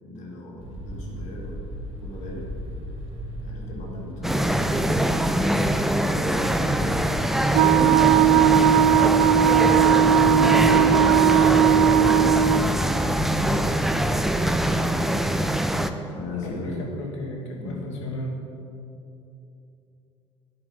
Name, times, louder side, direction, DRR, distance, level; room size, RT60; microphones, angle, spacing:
voice 1, 0.0-1.7 2.0-2.6 3.4-4.8 5.3-7.1 7.8-8.9 9.6-12.1 12.7-14.0 14.5-16.9 17.6-17.9, left 2 dB, 50° left, -1 dB, 2.6 m, -37 dB
sound 1, 0.6-14.8, equal, 40° right, 2.9 m, -36 dB
sound 2, 4.2-15.9, right 1 dB, ahead, 0.7 m, -23 dB
Wind instrument woodwind instrument, 7.5-12.7, right 10 dB, 60° right, 0.4 m, -18 dB
voice 2, 16.3-18.4, left 1 dB, 70° left, 1 dB, 1.8 m, -34 dB
10.5 x 8.9 x 7.2 m, 2.8 s
figure-of-eight pair, 60°, 16 cm